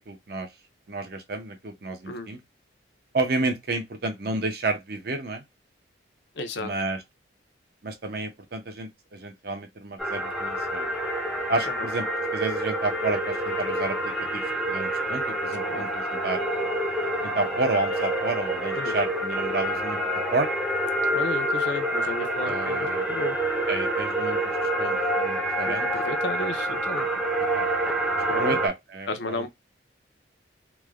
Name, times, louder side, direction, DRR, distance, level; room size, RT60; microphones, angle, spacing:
voice 1, 0.1-0.5 0.9-2.4 3.1-5.4 6.6-7.0 7.8-10.9 11.5-12.1 12.3-16.5 17.2-20.0 20.3-20.5 22.4-23.0 23.7-24.5 24.8-25.9 27.5-27.7 28.4-29.4, right 3 dB, 55° right, 0.6 m, -30 dB
voice 2, 6.4-6.7 11.7-11.9 15.7-15.9 18.7-19.0 21.1-23.4 25.6-27.1 28.3-28.6 29.1-29.5, left 2 dB, 65° left, 0.5 m, -33 dB
sound 1, 10.0-28.7, right 1 dB, ahead, 0.5 m, -27 dB
3.1 x 2.1 x 2.3 m
head